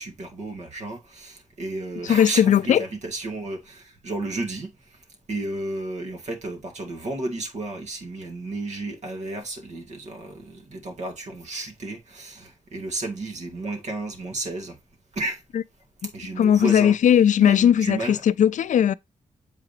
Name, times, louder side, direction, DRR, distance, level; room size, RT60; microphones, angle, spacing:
voice 1, 0.0-14.8 15.1-15.4 16.1-17.0 17.4-18.2, right 2 dB, 65° right, 1.9 m, -33 dB
voice 2, 2.0-2.8 16.4-18.9, left 9 dB, 80° left, 0.4 m, -18 dB
7.5 x 4.9 x 2.7 m
wide cardioid pair, 130°, 13 cm